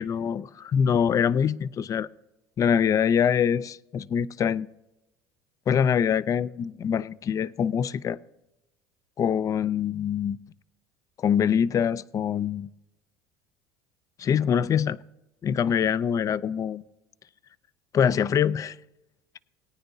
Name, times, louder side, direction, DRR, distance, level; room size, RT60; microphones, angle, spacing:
voice 1, 0.0-2.1 2.6-4.7 5.7-8.2 9.2-10.4 11.2-12.7 14.2-15.0 15.4-16.8 17.9-18.8, left 8 dB, 35° left, 0.4 m, -24 dB
18.5 x 9.5 x 2.7 m
supercardioid pair, 85°, 9 cm